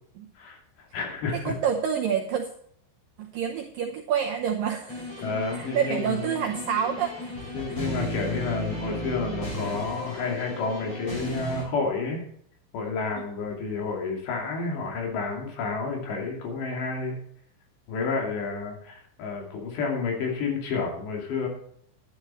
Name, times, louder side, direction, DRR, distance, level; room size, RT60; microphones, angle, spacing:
voice 1, 0.4-1.5 5.2-6.3 7.5-12.2 12.7-17.2 17.9-21.5, left 4 dB, 70° left, 1 dB, 4.5 m, -30 dB
voice 2, 1.3-2.5 3.2-5.0 5.5-7.8, right 8 dB, 75° right, 2 dB, 2.0 m, -28 dB
sound 1, 4.9-11.6, left 1 dB, 30° left, 5.7 m, -34 dB
11.5 x 11.0 x 4.3 m, 0.66 s
omnidirectional pair, 5.3 m